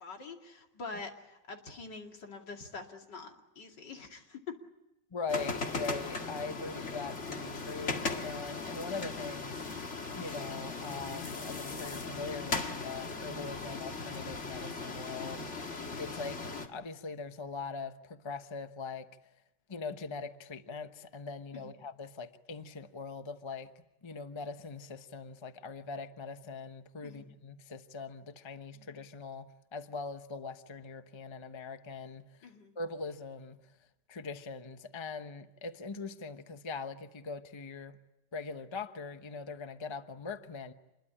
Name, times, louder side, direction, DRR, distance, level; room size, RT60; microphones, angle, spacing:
voice 1, 0.0-4.6 15.4-15.7 21.5-21.7 27.0-27.3 28.7-28.9 32.4-32.7, left 4 dB, 70° left, 3 dB, 3.1 m, -45 dB
voice 2, 5.1-9.6 10.1-15.6 16.0-19.1 19.7-23.7 24.0-32.5 32.7-33.6 34.1-38.0 38.3-40.7, left 4 dB, 20° left, 9 dB, 0.8 m, -41 dB
sound 1, 5.3-16.7, left 3 dB, 40° left, 2.2 m, -38 dB
27.0 x 21.5 x 9.9 m, 0.94 s
omnidirectional pair, 1.9 m